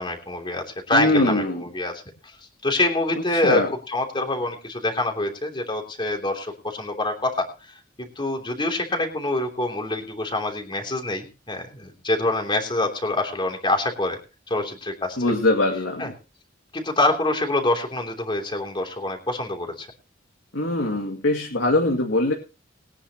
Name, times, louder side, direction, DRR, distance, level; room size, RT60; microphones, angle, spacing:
voice 1, 0.0-1.9 2.6-3.6 3.9-7.5 8.0-14.2 14.5-15.2 16.0-16.1 16.7-19.9, left 2 dB, 25° left, 3 dB, 3.2 m, -25 dB
voice 2, 0.9-1.6 3.4-3.7 15.2-16.1 20.5-22.3, left 2 dB, 80° left, 0 dB, 2.3 m, -22 dB
21.5 x 9.9 x 3.0 m, 0.32 s
head